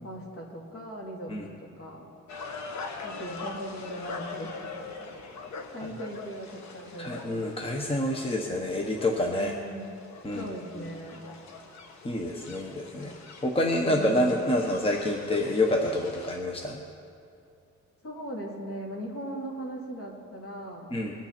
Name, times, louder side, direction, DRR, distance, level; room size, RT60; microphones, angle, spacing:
voice 1, 0.0-1.3 1.6-2.1 3.0-4.9 5.5-7.3 9.4-10.0 10.3-11.2 12.9-13.1 13.8-14.5 18.0-20.9, equal, 50° left, -2 dB, 3.2 m, -39 dB
sound 1, 2.3-16.4, left 3 dB, 70° left, 1.5 m, -43 dB
voice 2, 7.0-9.5 10.2-10.5 10.8-10.9 12.0-13.1 13.4-16.8 20.9-21.1, left 1 dB, 20° left, 1 dB, 1.2 m, -27 dB
22.5 x 8.9 x 4.4 m, 2.5 s
cardioid pair, 120°, 29 cm